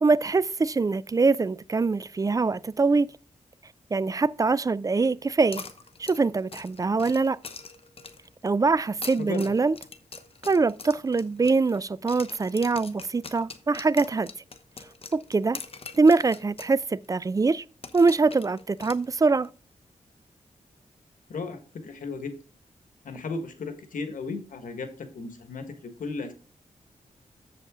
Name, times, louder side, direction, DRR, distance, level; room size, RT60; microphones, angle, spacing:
voice 1, 0.0-3.1 3.9-5.6 6.0-7.4 8.4-9.8 10.4-14.3 15.1-15.6 15.9-17.6 17.9-19.5, right 4 dB, 25° right, 0.3 m, -23 dB
sound 1, 5.5-8.3 8.9-11.8 12.1-16.8 17.0-17.1 17.8-19.5, left 4 dB, 45° left, 1.0 m, -43 dB
voice 2, 9.2-9.5 21.3-22.3 23.0-26.3, left 4 dB, 90° left, 1.5 m, -35 dB
7.8 x 7.5 x 3.6 m
wide cardioid pair, 85°, 13 cm